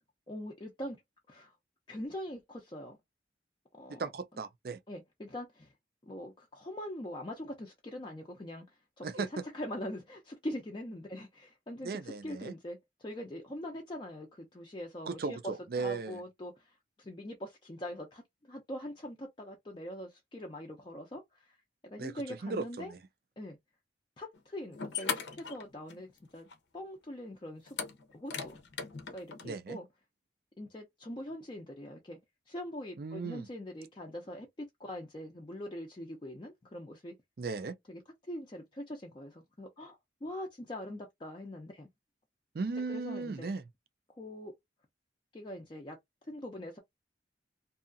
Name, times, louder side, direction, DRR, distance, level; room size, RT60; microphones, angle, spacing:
voice 1, 0.3-1.0 1.3-1.5 1.9-3.0 3.7-4.1 4.9-5.7 6.0-9.3 9.5-21.6 21.8-22.9 23.4-23.6 24.2-26.5 26.7-27.8 28.1-28.6 29.1-29.9 30.6-32.2 32.5-37.1 37.9-38.0 38.3-41.9 42.9-43.5 44.2-44.5 45.3-46.0 46.2-46.8, left 1 dB, 25° left, 0.4 m, -43 dB
voice 2, 3.9-4.8 9.0-9.3 11.8-12.5 15.1-16.2 22.0-23.0 29.4-29.8 33.0-33.5 37.4-37.7 42.5-43.6, right 4 dB, 55° right, 0.4 m, -37 dB
sound 1, 24.3-24.4 24.7-26.2 26.5-26.6 27.7-29.5, left 6 dB, 80° left, 0.6 m, -38 dB
2.7 x 2.3 x 2.5 m
head